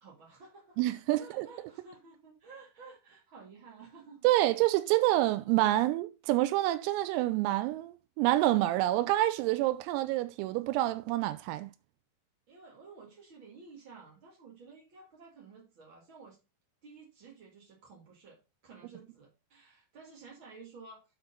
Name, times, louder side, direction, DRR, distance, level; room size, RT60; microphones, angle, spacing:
voice 1, 0.0-0.8 1.1-4.2 12.5-16.4 16.8-21.0, right 4 dB, 70° right, 1.1 m, -53 dB
voice 2, 0.8-1.5 4.2-11.7, right 15 dB, 90° right, 3.3 m, -27 dB
8.1 x 4.5 x 5.4 m
omnidirectional pair, 6.0 m